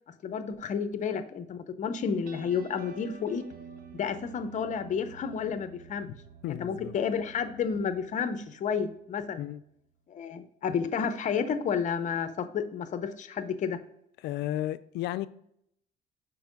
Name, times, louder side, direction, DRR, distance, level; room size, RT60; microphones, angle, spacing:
voice 1, 0.2-3.5 4.0-6.1 6.5-9.5 10.1-13.8, left 6 dB, 45° left, 0.7 m, -31 dB
sound 1, 2.0-9.2, right 5 dB, 60° right, 0.7 m, -50 dB
voice 2, 6.4-6.9 9.4-9.6 14.2-15.3, left 13 dB, 80° left, 0.4 m, -33 dB
5.9 x 4.5 x 5.1 m
cardioid pair, 110°, 17 cm